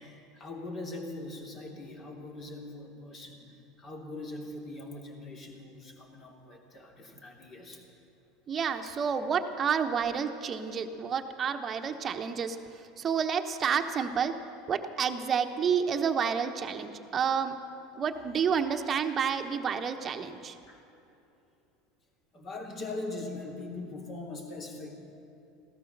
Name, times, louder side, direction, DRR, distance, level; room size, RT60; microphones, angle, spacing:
voice 1, 0.0-3.4 3.8-7.8 10.0-10.1 20.7-20.8 22.3-25.0, left 2 dB, 40° left, 1 dB, 2.9 m, -41 dB
voice 2, 8.5-12.6 13.0-14.3 14.7-17.5 17.9-20.6, right 7 dB, 35° right, 6 dB, 1.1 m, -29 dB
16.0 x 13.0 x 6.7 m, 2.8 s
hypercardioid pair, 95°, 0 cm